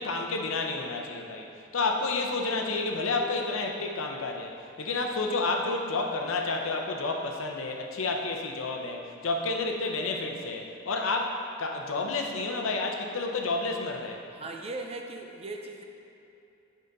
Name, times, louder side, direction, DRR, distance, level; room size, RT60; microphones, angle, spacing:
voice 1, 0.0-4.5 4.8-14.2, left 3 dB, 70° left, 2 dB, 0.7 m, -30 dB
voice 2, 14.3-15.8, right 2 dB, 30° right, 3 dB, 0.5 m, -38 dB
7.8 x 5.0 x 3.9 m, 2.8 s
head